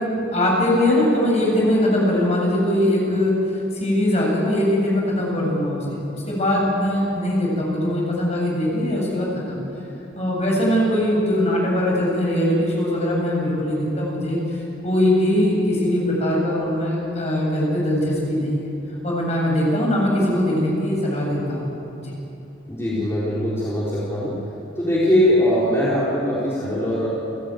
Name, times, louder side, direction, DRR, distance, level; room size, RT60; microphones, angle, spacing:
voice 1, 0.0-9.6 10.1-18.7 19.0-21.7 22.0-22.1, left 1 dB, 35° left, -3 dB, 7.5 m, -21 dB
voice 2, 22.7-24.4 24.8-27.1, equal, 15° left, -8 dB, 3.9 m, -21 dB
29.5 x 15.0 x 9.2 m, 3.0 s
head